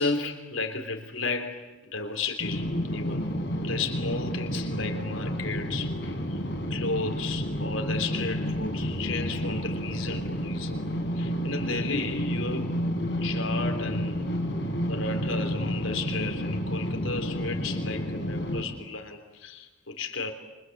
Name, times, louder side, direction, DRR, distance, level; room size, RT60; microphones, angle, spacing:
voice 1, 0.0-3.3 3.6-6.0 6.3-6.4 6.7-10.8 11.1-12.7 13.2-14.3 14.9-20.3, left 4 dB, 85° left, 3.6 m, -33 dB
sound 1, 2.4-18.6, equal, 60° left, 4.7 m, -30 dB
29.5 x 25.0 x 8.0 m
head